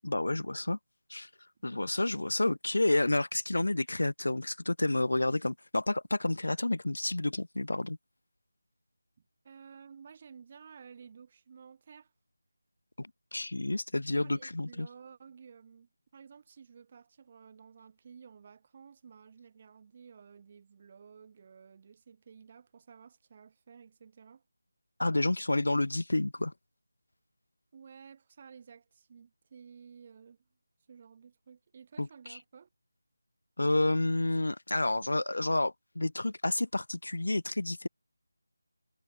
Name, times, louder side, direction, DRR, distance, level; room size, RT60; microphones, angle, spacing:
voice 1, 0.0-0.8 1.1-1.3 1.6-8.0 13.0-14.9 25.0-26.5 32.0-32.4 33.6-37.9, left 2 dB, 85° left, 0.4 m, -30 dB
voice 2, 9.4-12.1 14.2-24.4 27.7-30.4 30.9-32.7, right 6 dB, 25° right, 6.0 m, -53 dB
figure-of-eight pair, 175°, 0 cm